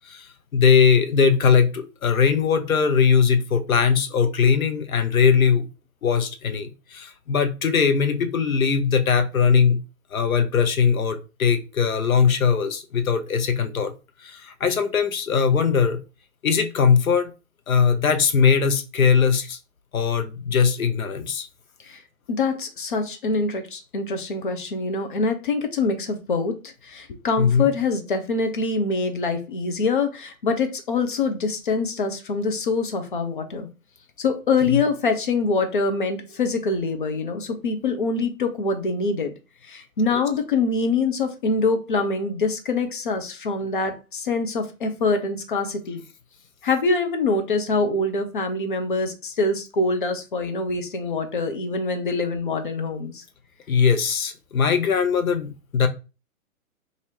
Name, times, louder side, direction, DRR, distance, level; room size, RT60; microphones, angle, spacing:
voice 1, 0.5-5.7 6.0-9.8 10.1-13.9 14.2-16.0 16.4-17.3 17.7-19.6 19.9-21.5 27.4-27.7 34.7-34.8 53.7-55.9, left 6 dB, 70° left, 7 dB, 0.7 m, -20 dB
voice 2, 22.3-33.7 34.2-39.3 39.6-46.0 46.6-53.2, left 3 dB, 35° left, 6 dB, 0.5 m, -24 dB
2.6 x 2.6 x 3.1 m, 0.30 s
figure-of-eight pair, 125°, 43 cm